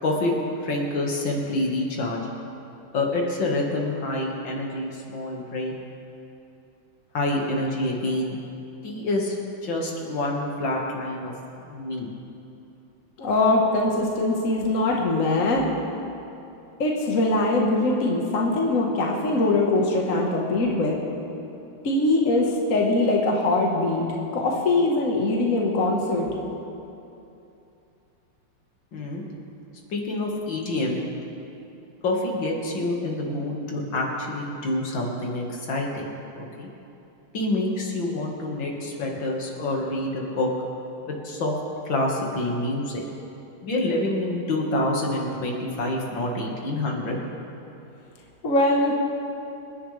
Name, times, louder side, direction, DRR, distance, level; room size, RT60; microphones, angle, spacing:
voice 1, 0.0-2.2 2.9-5.7 7.1-8.4 8.8-9.4 9.6-11.3 11.7-12.1 28.9-29.2 29.9-31.0 32.0-36.1 36.4-36.7 37.3-40.5 41.1-41.6 41.9-43.0 43.6-47.2, left 1 dB, 65° left, -1 dB, 2.4 m, -27 dB
voice 2, 13.2-15.7 16.8-21.0 21.8-24.1 24.3-26.3 48.4-48.9, left 2 dB, 40° left, -1 dB, 1.6 m, -22 dB
26.5 x 10.5 x 3.3 m, 2.8 s
omnidirectional pair, 2.3 m